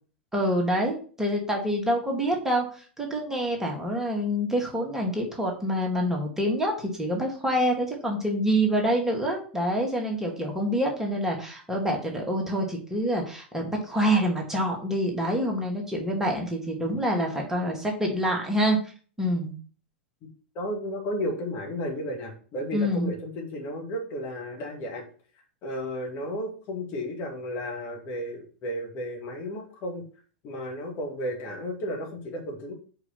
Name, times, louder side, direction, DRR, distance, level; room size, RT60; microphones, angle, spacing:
voice 1, 0.3-18.8 19.2-19.5 22.7-23.1, equal, 5° right, 0 dB, 1.8 m, -26 dB
voice 2, 20.5-25.0 25.6-30.0 30.4-32.7, equal, 40° left, 1 dB, 2.3 m, -33 dB
4.9 x 4.7 x 5.8 m, 0.42 s
figure-of-eight pair, 95°, 6 cm